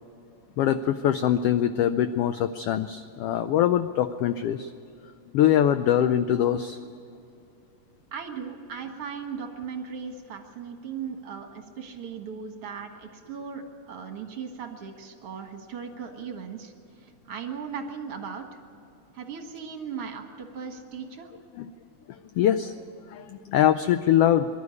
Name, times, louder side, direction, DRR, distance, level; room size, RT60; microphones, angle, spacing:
voice 1, 0.6-4.7 5.3-6.9 21.6-21.7 22.1-22.8 23.1-24.5, left 10 dB, 90° left, 11 dB, 1.3 m, -23 dB
voice 2, 8.1-16.7 17.0-18.6 19.1-21.3, right 6 dB, 55° right, 4 dB, 2.4 m, -37 dB
23.5 x 12.0 x 9.7 m, 2.6 s
omnidirectional pair, 3.3 m